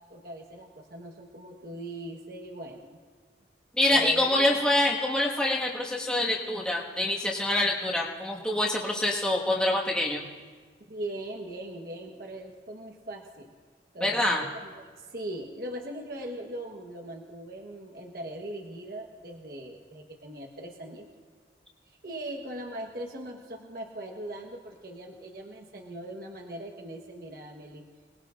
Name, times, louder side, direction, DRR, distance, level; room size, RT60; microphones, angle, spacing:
voice 1, 0.1-3.0 3.9-4.6 10.9-13.5 13.9-14.2 14.5-21.1 21.9-27.8, right 1 dB, 55° right, 1 dB, 1.2 m, -40 dB
voice 2, 3.7-10.2 14.0-14.4, left 1 dB, 5° left, -4 dB, 1.6 m, -26 dB
26.0 x 19.5 x 2.5 m, 1.5 s
head